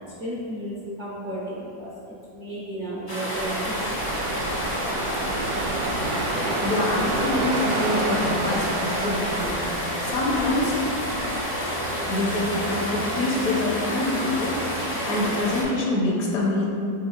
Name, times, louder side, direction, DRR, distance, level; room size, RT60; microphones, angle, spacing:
voice 1, 0.0-3.9, right 1 dB, 70° right, -8 dB, 0.4 m, -34 dB
sound 1, 3.1-15.6, equal, 35° left, 0.3 m, -29 dB
sound 2, 3.3-11.4, right 2 dB, 90° right, 1.3 m, -30 dB
voice 2, 6.6-9.6 10.0-10.8 12.1-14.6 15.1-16.7, left 2 dB, 65° left, -3 dB, 1.1 m, -25 dB
sound 3, 7.5-15.7, left 1 dB, 80° left, 1.2 m, -37 dB
5.5 x 3.9 x 2.3 m, 2.6 s
omnidirectional pair, 1.9 m